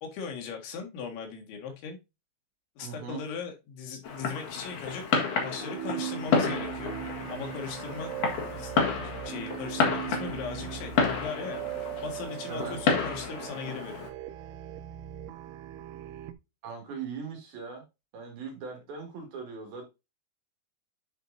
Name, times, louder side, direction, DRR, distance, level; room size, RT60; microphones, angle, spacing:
voice 1, 0.0-2.0 2.8-5.1 5.4-7.0 7.3-8.1 8.5-11.6 12.0-14.1 18.7-18.8, left 5 dB, 75° left, 4.1 m, -39 dB
voice 2, 2.8-3.2 12.5-12.8 16.6-17.8 18.1-19.8, right 5 dB, 60° right, 3.7 m, -39 dB
Fireworks, 4.0-14.1, left 5 dB, 60° left, 2.3 m, -31 dB
sound 1, 5.3-16.3, right 12 dB, 90° right, 3.1 m, -39 dB
10.0 x 4.5 x 2.6 m
omnidirectional pair, 5.4 m